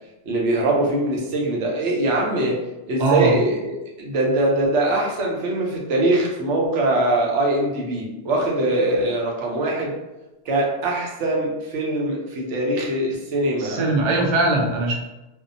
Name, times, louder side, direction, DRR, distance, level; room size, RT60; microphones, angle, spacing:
voice 1, 0.3-2.6 2.9-9.9 10.5-13.9, right 1 dB, 85° right, -2 dB, 1.0 m, -22 dB
voice 2, 3.0-3.3 13.6-15.0, right 2 dB, 55° right, -1 dB, 0.6 m, -20 dB
2.6 x 2.1 x 2.6 m, 1.0 s
omnidirectional pair, 1.2 m